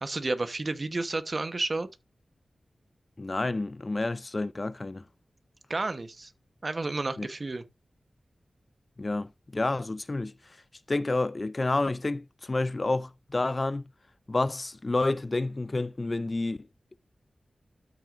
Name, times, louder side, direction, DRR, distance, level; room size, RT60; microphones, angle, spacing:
voice 1, 0.0-1.9 5.7-6.3 6.6-7.6, right 2 dB, 40° right, 1.0 m, -31 dB
voice 2, 3.2-5.0 7.2-7.3 9.0-10.6 10.9-13.9 14.3-16.7, left 2 dB, 35° left, 0.4 m, -29 dB
13.0 x 6.2 x 2.5 m
wide cardioid pair, 105°, 0 cm